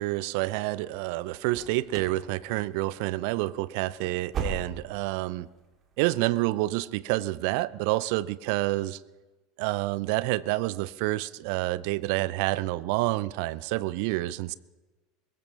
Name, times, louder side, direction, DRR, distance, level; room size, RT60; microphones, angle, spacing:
voice 1, 0.0-5.5 6.0-9.0 9.6-14.5, right 18 dB, 55° right, 0.4 m, -28 dB
sound 1, 1.5-2.2 2.5-2.9 3.2-3.4 3.8-5.1 5.4-5.5 6.0-6.1, right 5 dB, 35° right, 2.5 m, -36 dB
22.0 x 19.5 x 3.2 m
figure-of-eight pair, 75°, 0 cm